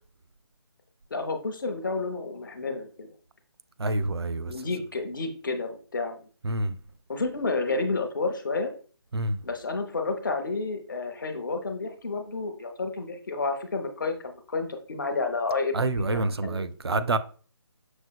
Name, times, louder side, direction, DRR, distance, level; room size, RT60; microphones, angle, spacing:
voice 1, 1.1-3.1 4.5-6.2 7.1-8.7 9.4-17.2, left 3 dB, 50° left, 0.6 m, -31 dB
voice 2, 3.8-4.5 6.4-6.8 9.1-9.4 15.7-17.2, right 2 dB, 70° right, 0.4 m, -27 dB
6.1 x 2.7 x 2.2 m
figure-of-eight pair, 150°, 14 cm